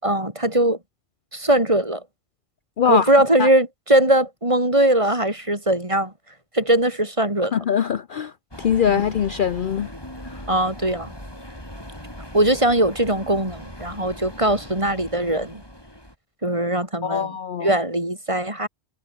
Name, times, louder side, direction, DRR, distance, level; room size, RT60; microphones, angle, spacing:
voice 1, 0.0-0.8 1.3-2.0 2.9-6.1 6.5-7.5 8.9-9.0 10.5-11.1 12.3-15.6 16.4-17.4 17.6-18.7, right 1 dB, 25° right, 4.0 m, -20 dB
voice 2, 2.8-3.1 3.4-3.5 7.5-8.3 8.6-9.9 10.2-10.4 17.0-17.7, left 8 dB, 55° left, 0.7 m, -22 dB
sound 1, 8.5-16.2, equal, 20° left, 7.7 m, -39 dB
omnidirectional pair, 1.2 m